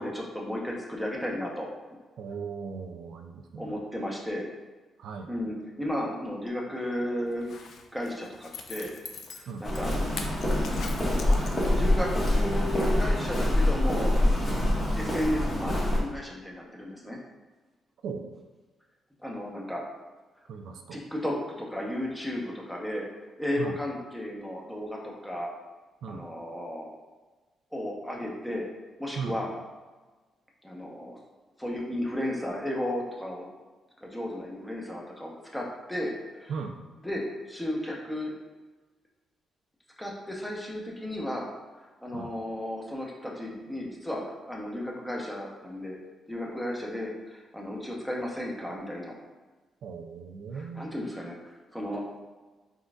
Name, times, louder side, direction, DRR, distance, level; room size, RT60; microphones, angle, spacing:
voice 1, 0.0-1.7 3.6-4.5 5.3-7.5 7.9-8.9 9.3-9.9 11.3-14.1 14.9-17.2 19.2-19.8 20.9-23.0 23.4-25.5 26.1-26.9 27.7-28.7 29.0-29.5 30.6-31.2 31.6-33.5 34.0-36.5 37.0-38.3 40.0-41.5 42.0-46.0 46.3-49.1 50.5-52.0, left 1 dB, 5° left, -2 dB, 0.9 m, -34 dB
voice 2, 2.2-3.8 5.0-5.3 9.5-9.6 14.6-14.8 18.0-18.2 20.5-21.0 23.6-23.8 26.0-26.2 29.2-29.4 36.5-36.8 42.1-42.3 49.8-50.9, right 5 dB, 75° right, 5 dB, 0.3 m, -37 dB
Zipper (clothing), 7.3-11.9 12.3-12.4, left 5 dB, 65° left, 0.4 m, -42 dB
Walk footsteps, 9.6-16.0, left 1 dB, 35° left, 1.4 m, -25 dB
4.4 x 3.6 x 2.4 m, 1.3 s
cardioid pair, 100°, 0 cm